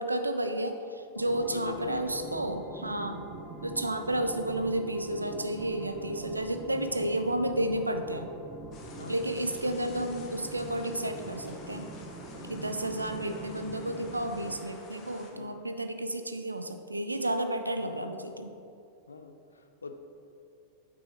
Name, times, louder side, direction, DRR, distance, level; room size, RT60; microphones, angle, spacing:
voice 1, 0.0-3.2 3.6-8.3 9.1-11.9 12.5-18.5, right 1 dB, 85° right, 8 dB, 0.4 m, -32 dB
sound 1, 1.1-14.5, right 2 dB, 10° right, 1.1 m, -44 dB
voice 2, 1.5-2.4 9.0-9.3 9.8-10.1 12.4-13.0 15.3-15.7 17.8-18.3 19.1-20.0, left 4 dB, 75° left, 7 dB, 0.5 m, -44 dB
sound 2, 8.7-15.3, left 3 dB, 35° left, 1.0 m, -51 dB
8.7 x 6.2 x 3.0 m, 2.7 s
figure-of-eight pair, 90°, 0 cm